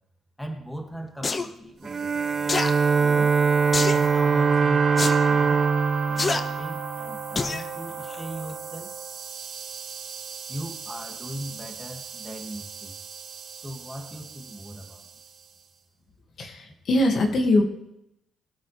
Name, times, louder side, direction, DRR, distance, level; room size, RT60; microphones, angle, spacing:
voice 1, 0.4-2.1 3.0-3.4 3.9-5.7 6.1-8.9 10.5-13.0 13.5-15.1 16.6-16.7, equal, 5° left, 2 dB, 2.2 m, -38 dB
sound 1, 1.2-1.5 2.5-2.7 3.7-4.0 5.0-5.2 6.2-6.4 7.4-7.6 8.1-8.2, left 3 dB, 35° left, 0.9 m, -26 dB
Bowed string instrument, 1.8-7.4, right 5 dB, 35° right, 0.4 m, -22 dB
sound 2, 1.9-15.3, right 5 dB, 80° right, 3.2 m, -34 dB
voice 2, 16.4-17.6, left 1 dB, 60° left, 2 dB, 2.0 m, -22 dB
21.5 x 8.4 x 3.4 m, 0.84 s
cardioid pair, 90°, 0 cm